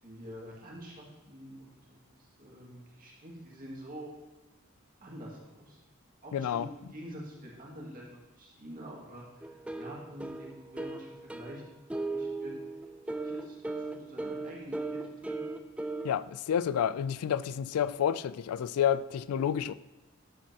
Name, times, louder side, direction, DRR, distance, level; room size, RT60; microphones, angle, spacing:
voice 1, 0.0-4.1 5.0-5.8 6.2-11.6 12.0-12.5 13.1-15.4, equal, 40° right, 2.1 m, -47 dB
voice 2, 6.3-6.7 16.0-19.7, left 9 dB, 90° left, 0.3 m, -29 dB
sound 1, 9.4-16.2, right 2 dB, 5° right, 0.4 m, -37 dB
12.0 x 7.4 x 2.9 m
head